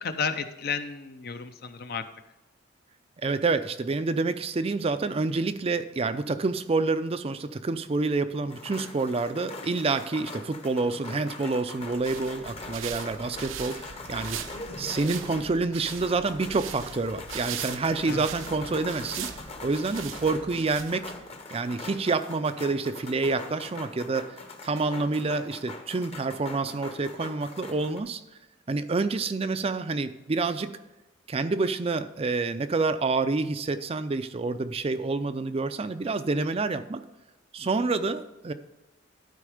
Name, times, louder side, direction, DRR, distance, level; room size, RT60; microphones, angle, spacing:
voice 1, 0.0-2.1 18.1-18.2, left 5 dB, 55° left, 9 dB, 0.7 m, -32 dB
voice 2, 3.2-14.4 14.8-19.3 19.6-21.0 21.5-24.4 24.6-28.2 28.7-30.8 31.3-37.0 37.5-38.5, right 3 dB, 30° right, 11 dB, 0.4 m, -28 dB
sound 1, 8.5-28.0, left 3 dB, 30° left, 0.9 m, -42 dB
sound 2, 12.0-21.3, right 9 dB, 90° right, 0.6 m, -40 dB
12.0 x 4.7 x 5.0 m, 1.0 s
head